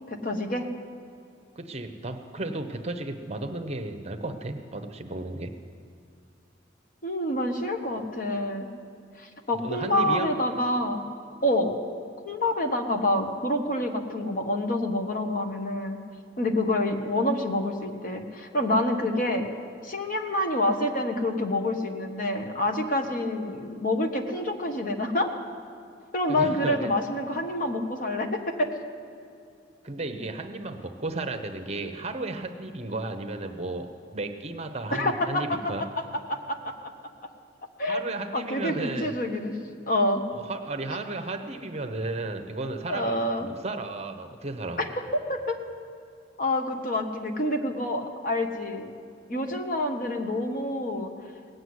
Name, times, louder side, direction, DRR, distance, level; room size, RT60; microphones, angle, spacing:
voice 1, 0.1-0.7 7.0-8.7 9.2-11.0 11.4-11.7 12.2-16.0 16.4-19.5 19.8-25.3 26.1-28.7 34.9-35.6 36.3-36.9 37.8-38.0 38.3-39.5 39.9-40.2 42.9-43.5 44.8-44.9 45.3-45.6 46.4-48.9 49.3-51.1, left 1 dB, 45° left, 4 dB, 1.3 m, -27 dB
voice 2, 1.6-5.6 9.6-10.3 26.3-26.9 29.8-35.8 37.9-39.2 40.3-44.9, right 2 dB, 35° right, 7 dB, 0.9 m, -34 dB
18.0 x 7.9 x 9.5 m, 2.4 s
head